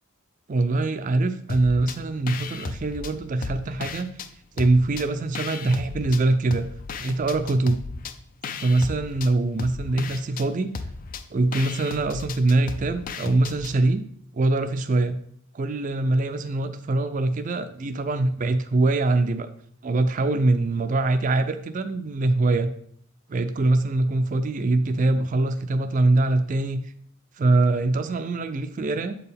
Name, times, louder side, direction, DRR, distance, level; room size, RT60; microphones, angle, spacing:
voice 1, 0.5-4.1 4.6-6.7 7.0-7.8 8.6-10.7 11.3-14.0 14.3-15.2 15.5-19.5 19.8-22.7 23.3-26.8 27.4-29.2, right 2 dB, 40° right, 9 dB, 0.4 m, -23 dB
sound 1, 1.5-2.0 2.3-4.3 4.6-6.2 6.5-13.8, left 4 dB, 40° left, 0.4 m, -35 dB
7.6 x 4.5 x 3.4 m, 0.63 s
head